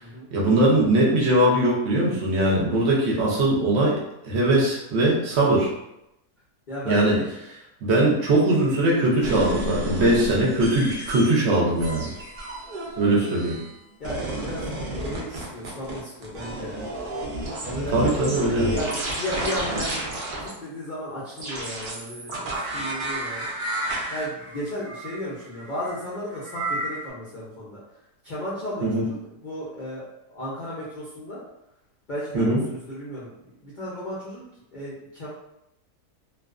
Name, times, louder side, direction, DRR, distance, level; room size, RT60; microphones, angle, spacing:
voice 1, 0.3-5.7 6.9-7.2 7.8-12.1 13.0-13.6 17.9-18.7 28.8-29.1 32.3-32.6, right 1 dB, 60° right, -3 dB, 0.8 m, -21 dB
voice 2, 6.7-7.3 13.1-13.5 14.0-16.9 17.6-18.1 18.5-20.0 20.4-27.8 28.2-29.2 29.4-30.0 30.3-31.4 32.1-33.3 33.6-34.4 34.7-35.3, equal, 70° left, -8 dB, 0.4 m, -34 dB
sound 1, 9.2-11.4 11.8-13.8 14.0-20.5 21.4-27.0, right 1 dB, 80° right, 0.4 m, -31 dB
2.4 x 2.3 x 2.4 m, 0.85 s
omnidirectional pair, 1.6 m